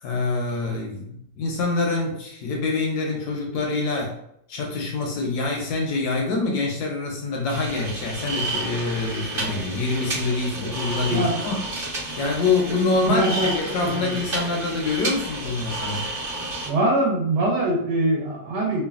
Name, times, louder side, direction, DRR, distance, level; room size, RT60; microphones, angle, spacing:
voice 1, 0.0-4.2 4.5-11.6 11.9-16.1, left 3 dB, 70° left, 0 dB, 1.0 m, -25 dB
sound 1, 7.5-16.7, right 2 dB, 40° right, 1.0 m, -31 dB
voice 2, 13.1-13.5 13.8-14.1 16.7-18.8, right 1 dB, 70° right, -3 dB, 1.3 m, -23 dB
3.1 x 2.2 x 2.3 m, 0.73 s
omnidirectional pair, 1.9 m